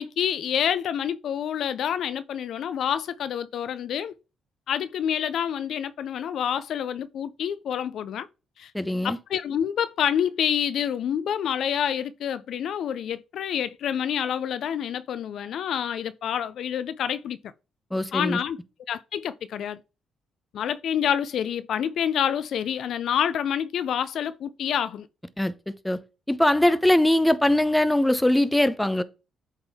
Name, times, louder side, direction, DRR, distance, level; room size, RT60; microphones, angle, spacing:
voice 1, 0.0-4.1 4.7-8.3 8.6-8.7 9.0-17.5 18.1-18.6 18.9-19.8 20.5-25.1, left 9 dB, 70° left, 0.4 m, -27 dB
voice 2, 8.7-9.2 17.9-18.4 25.4-26.0 26.3-29.0, left 1 dB, 5° left, 0.6 m, -21 dB
8.0 x 3.5 x 3.5 m
cardioid pair, 90°, 0 cm